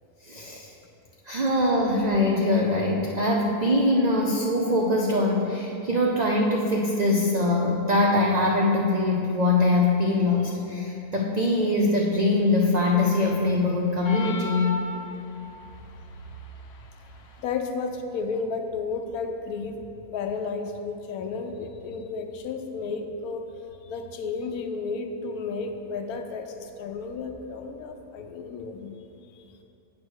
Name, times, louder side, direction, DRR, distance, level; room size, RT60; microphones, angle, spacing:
voice 1, 0.2-0.7 1.3-14.8, left 2 dB, 85° right, -2 dB, 0.3 m, -23 dB
sound 1, 14.0-15.5, left 2 dB, 60° left, 0.7 m, -34 dB
voice 2, 17.4-19.8 20.1-23.4 23.8-29.0 29.3-29.4, left 4 dB, 85° left, 5 dB, 1.1 m, -32 dB
8.8 x 3.1 x 6.2 m, 2.8 s
omnidirectional pair, 1.5 m